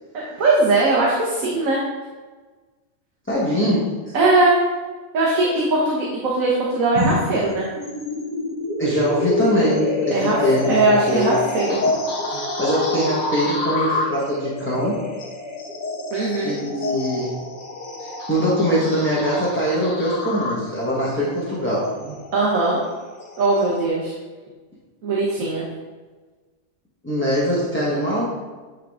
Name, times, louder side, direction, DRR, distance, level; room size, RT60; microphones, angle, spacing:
voice 1, 0.1-1.8 4.1-4.6 5.1-7.7 10.1-10.4 10.7-11.8 12.3-12.4 16.1-16.6 22.3-22.8 23.4-24.1 25.0-25.6, right 2 dB, 75° right, -4 dB, 1.5 m, -20 dB
voice 2, 3.3-4.0 8.8-11.3 12.6-15.0 16.4-17.4 18.0-21.9 27.0-28.3, equal, 10° left, -8 dB, 1.1 m, -22 dB
sound 1, 6.9-23.9, left 2 dB, 85° left, 1.4 m, -27 dB
9.3 x 3.7 x 3.6 m, 1.3 s
omnidirectional pair, 1.5 m